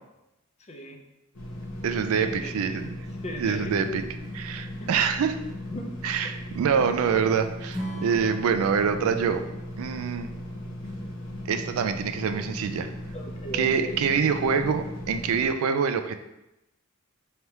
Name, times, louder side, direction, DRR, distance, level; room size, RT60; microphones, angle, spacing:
voice 1, 0.6-1.0 2.2-3.8 4.8-4.9 5.7-6.0 13.1-14.0, equal, 30° left, 2 dB, 0.5 m, -38 dB
sound 1, 1.3-15.5, left 1 dB, 75° left, 0.9 m, -37 dB
voice 2, 1.8-2.9 3.4-4.0 4.3-5.4 6.0-9.4 9.8-10.3 11.5-12.9 13.5-16.2, right 6 dB, 80° right, 9 dB, 0.3 m, -25 dB
Acoustic guitar / Strum, 7.7-11.0, equal, ahead, 0.9 m, -40 dB
3.3 x 2.8 x 4.5 m, 0.92 s
head